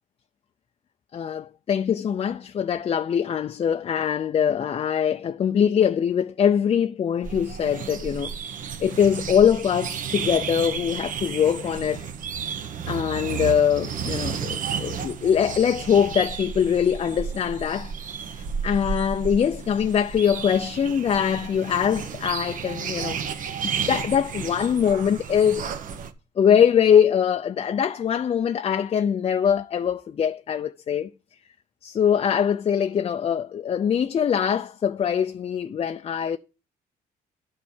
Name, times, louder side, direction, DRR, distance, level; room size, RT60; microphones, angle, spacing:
voice 1, 1.1-8.3 8.8-12.1 12.9-17.9 18.6-25.7 26.4-31.1 31.8-36.4, left 8 dB, 35° left, 0.5 m, -23 dB
sound 1, 7.2-26.1, right 7 dB, 50° right, 1.2 m, -32 dB
12.0 x 4.6 x 7.2 m
cardioid pair, 110°, 17 cm